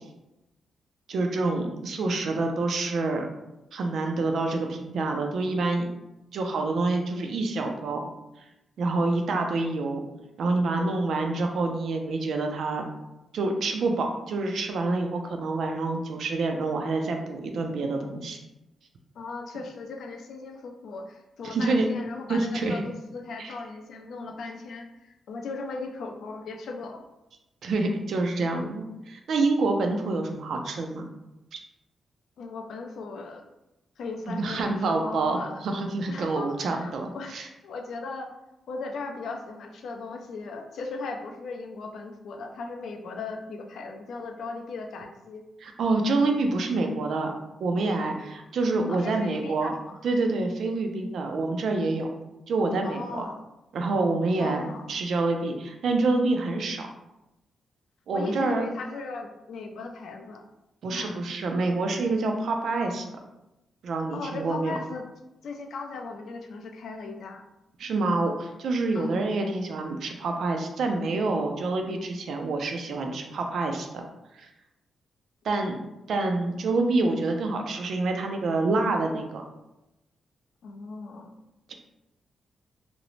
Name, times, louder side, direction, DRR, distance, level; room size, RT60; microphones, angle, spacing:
voice 1, 1.1-3.3 3.7-5.9 6.3-8.0 8.8-10.0 10.4-12.9 13.3-18.4 21.4-21.9 22.3-22.8 23.4-23.5 27.6-31.0 31.5-31.6 34.3-37.5 45.6-47.3 47.6-49.7 50.0-52.1 52.5-53.2 53.7-54.6 54.9-56.9 58.1-58.6 60.8-63.0 63.8-64.8 67.8-74.0 74.3-74.5 75.4-75.8 76.1-79.4, right 3 dB, 65° right, 3 dB, 0.4 m, -27 dB
voice 2, 19.2-27.1 32.4-33.4 34.0-35.6 36.1-37.3 37.6-38.3 38.7-45.4 48.9-50.0 52.8-53.4 54.4-54.9 58.1-60.4 60.9-61.2 64.1-65.0 65.4-67.4 68.9-69.2 80.6-81.3, left 3 dB, 70° left, 3 dB, 0.3 m, -37 dB
2.5 x 2.0 x 3.0 m, 0.94 s
wide cardioid pair, 150°, 0 cm